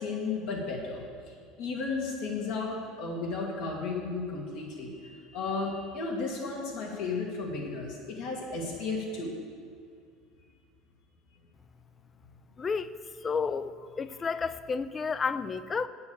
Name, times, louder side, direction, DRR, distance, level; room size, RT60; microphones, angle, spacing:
voice 1, 0.0-9.3, left 3 dB, 70° left, -2 dB, 2.1 m, -34 dB
voice 2, 12.6-12.9 13.2-15.9, left 5 dB, 25° left, 14 dB, 0.4 m, -31 dB
8.1 x 6.9 x 6.9 m, 2.2 s
supercardioid pair, 120°, 0 cm